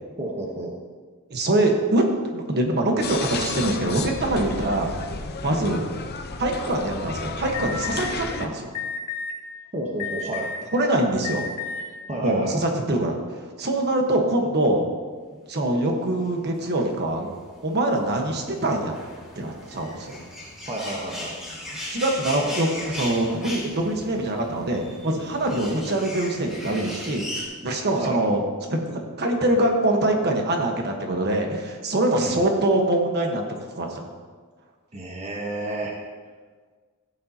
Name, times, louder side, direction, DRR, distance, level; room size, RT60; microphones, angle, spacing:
voice 1, 0.2-0.8 9.7-10.7 12.1-12.5 20.6-21.3 28.0-28.2 32.2-32.5 34.9-35.9, right 1 dB, 30° right, -1 dB, 1.1 m, -31 dB
voice 2, 1.3-2.1 2.3-4.9 5.4-5.8 6.4-8.7 10.7-11.5 12.2-13.1 13.6-14.8 15.5-17.3 17.6-18.9 19.4-20.3 21.9-28.4 28.7-33.4 33.7-34.0, right 1 dB, 50° right, 2 dB, 1.2 m, -24 dB
sound 1, 3.0-8.5, left 4 dB, 45° left, 0.7 m, -32 dB
Alarm, 7.5-8.1 8.7-9.3 10.0-10.6 11.2-11.8, left 6 dB, 75° left, 1.5 m, -31 dB
sound 2, 16.3-27.4, left 1 dB, ahead, 2.7 m, -38 dB
15.0 x 8.5 x 2.8 m, 1.5 s
head